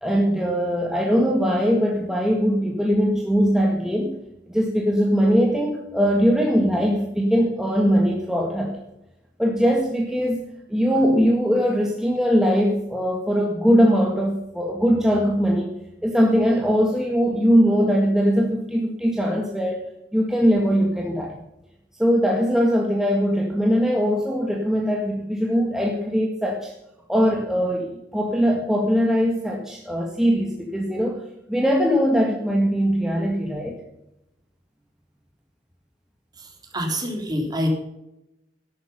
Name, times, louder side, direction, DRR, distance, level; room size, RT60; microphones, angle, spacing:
voice 1, 0.0-4.2 4.5-8.8 9.4-10.4 10.7-15.7 16.0-19.8 20.1-21.4 22.0-26.7 27.1-31.2 31.5-33.8, equal, 5° right, -1 dB, 1.8 m, -21 dB
voice 2, 36.3-37.7, equal, 25° right, 2 dB, 3.7 m, -27 dB
13.0 x 12.0 x 5.7 m, 0.86 s
head